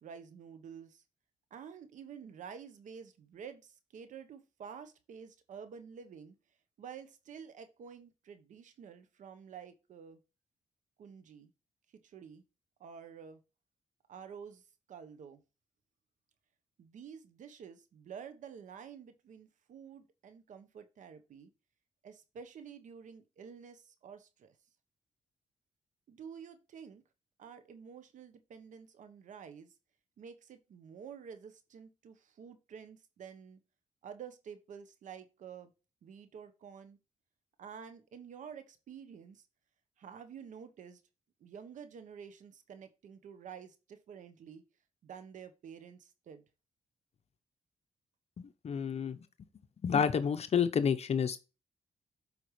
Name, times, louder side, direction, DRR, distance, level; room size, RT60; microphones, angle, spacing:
voice 1, 0.0-1.0 1.5-6.4 6.8-10.2 11.0-11.5 12.0-12.4 12.8-13.4 14.1-15.4 16.8-21.5 22.0-24.6 26.1-27.0 27.4-29.7 30.2-33.6 34.0-35.7 36.0-37.0 37.6-39.4 40.0-41.0 41.4-44.6 45.0-46.4, right 7 dB, 75° right, 1.0 m, -50 dB
voice 2, 48.4-49.5 49.8-51.4, left 7 dB, 55° left, 0.7 m, -30 dB
8.1 x 5.2 x 3.1 m
cardioid pair, 85°, 13 cm